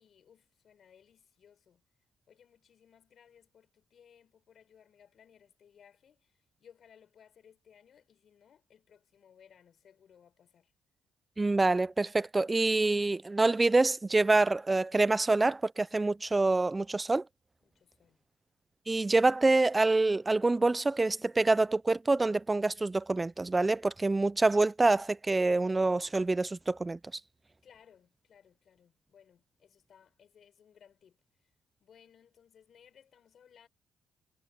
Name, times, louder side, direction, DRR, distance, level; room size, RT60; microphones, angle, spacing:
voice 1, 0.0-1.8 2.3-6.3 6.6-10.7 17.6-18.2 27.6-31.2 31.8-33.7, left 8 dB, 60° left, 6.7 m, -61 dB
voice 2, 11.4-17.2 18.9-27.0, right 2 dB, 20° right, 0.4 m, -26 dB
cardioid pair, 90°, 0 cm